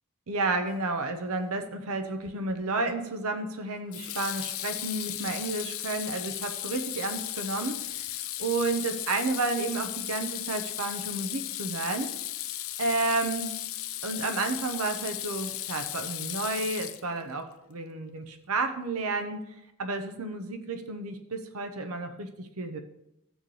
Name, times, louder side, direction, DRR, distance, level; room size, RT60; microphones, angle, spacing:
voice 1, 0.3-12.1 12.8-13.6 14.0-19.4 19.8-22.8, right 3 dB, 80° right, 6 dB, 0.9 m, -31 dB
Water tap faucet / Sink (filling or washing), 2.3-2.6 3.9-17.3, left 14 dB, 70° left, 0.5 m, -36 dB
17.0 x 6.4 x 3.3 m, 0.84 s
head